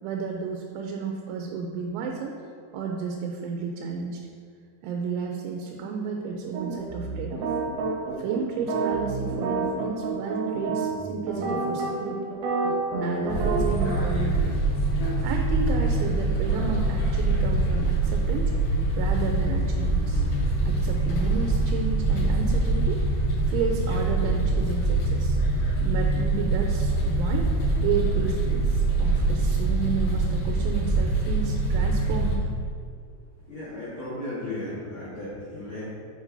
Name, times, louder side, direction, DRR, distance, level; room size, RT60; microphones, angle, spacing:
voice 1, 0.0-2.4 2.7-4.2 4.8-7.5 8.2-12.3 12.9-14.5 15.2-18.5 19.0-20.2 20.6-23.0 23.4-25.4 25.8-27.5 27.8-32.4, right 5 dB, 85° right, 1 dB, 2.9 m, -32 dB
sound 1, 6.5-13.9, right 4 dB, 70° right, 2.6 m, -28 dB
sound 2, 13.3-32.3, right 2 dB, 65° left, 4.0 m, -24 dB
voice 2, 33.5-35.8, left 1 dB, 80° left, -9 dB, 1.5 m, -35 dB
8.0 x 7.4 x 2.6 m, 2.2 s
omnidirectional pair, 5.5 m